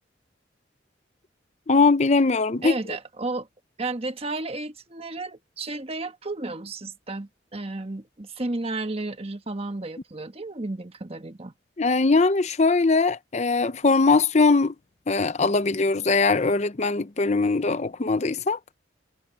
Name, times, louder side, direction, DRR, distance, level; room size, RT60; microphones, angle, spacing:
voice 1, 1.7-2.8 11.8-14.7 15.1-18.6, left 3 dB, 40° left, 0.7 m, -21 dB
voice 2, 2.6-3.5 3.8-11.5, right 2 dB, 35° right, 1.3 m, -32 dB
head